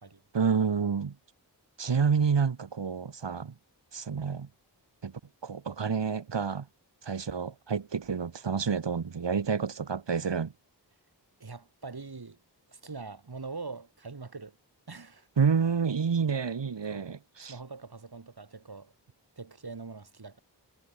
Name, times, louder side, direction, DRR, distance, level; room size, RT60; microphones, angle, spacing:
voice 1, 0.3-1.2 1.8-3.5 3.9-4.5 5.0-5.1 5.4-6.7 7.0-10.5 15.4-17.6, right 6 dB, 80° right, 1.3 m, -29 dB
voice 2, 11.4-12.4 12.7-14.6 14.9-15.3 16.9-17.1 17.5-18.9 19.4-20.4, right 4 dB, 60° right, 2.3 m, -43 dB
wide cardioid pair, 50°, 43 cm